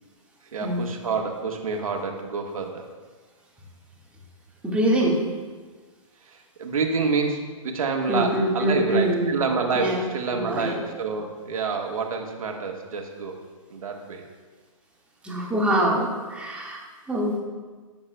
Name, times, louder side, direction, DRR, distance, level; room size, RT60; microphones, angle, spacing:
voice 1, 0.5-2.9 6.3-13.4 13.7-14.2, right 4 dB, 75° right, 2 dB, 1.5 m, -28 dB
voice 2, 4.6-5.2 8.1-9.3 9.7-10.0 10.3-10.7 15.2-17.4, right 1 dB, 5° right, -3 dB, 1.6 m, -24 dB
17.5 x 7.0 x 2.2 m, 1.4 s
hypercardioid pair, 135°, 18 cm